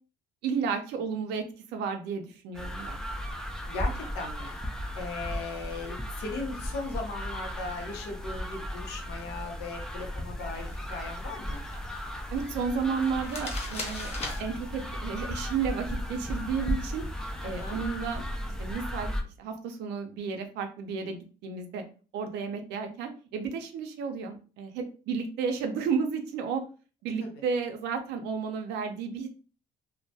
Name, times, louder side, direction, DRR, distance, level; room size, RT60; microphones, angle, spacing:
voice 1, 0.4-1.4 1.7-3.0 12.3-14.1 14.4-17.0 17.4-18.2 18.6-19.1 19.4-21.8 22.1-26.6 27.0-29.3, right 6 dB, 80° right, 5 dB, 0.5 m, -32 dB
sound 1, 2.5-19.2, equal, 5° left, 0.3 m, -35 dB
voice 2, 3.6-4.6 5.0-11.6 17.4-17.8 27.2-27.3, left 3 dB, 80° left, 2 dB, 0.7 m, -38 dB
sound 2, 10.4-17.8, left 2 dB, 40° left, 0.7 m, -44 dB
2.2 x 2.1 x 2.7 m, 0.37 s
cardioid pair, 110°, 17 cm